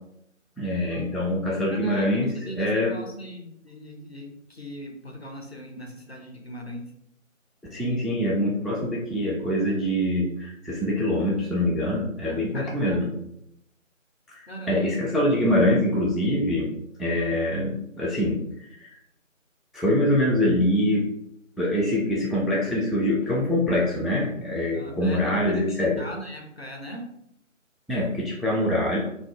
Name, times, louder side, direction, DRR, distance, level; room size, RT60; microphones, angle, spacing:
voice 1, 0.6-2.9 7.7-13.1 14.3-16.7 17.0-18.4 18.8-18.9 19.7-21.1 21.6-26.1 27.9-29.0, left 1 dB, ahead, -4 dB, 0.4 m, -24 dB
voice 2, 1.7-2.1 2.3-6.9 12.2-13.3 14.5-14.8 24.7-27.1, equal, 50° left, 1 dB, 0.7 m, -40 dB
2.6 x 2.5 x 3.5 m, 0.77 s
figure-of-eight pair, 170°, 40 cm